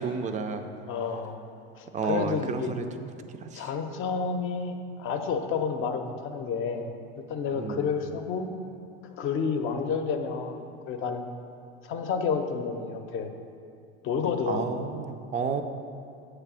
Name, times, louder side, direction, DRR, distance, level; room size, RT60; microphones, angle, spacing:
voice 1, 0.0-0.7 1.9-3.7 7.5-7.9 14.5-15.6, right 5 dB, 25° right, 7 dB, 0.4 m, -32 dB
voice 2, 0.9-1.4 1.8-2.7 3.5-8.5 9.1-11.2 11.8-13.3 14.0-14.7, left 5 dB, 45° left, 6 dB, 0.7 m, -30 dB
7.8 x 3.3 x 6.0 m, 2.5 s
supercardioid pair, 115°, 30 cm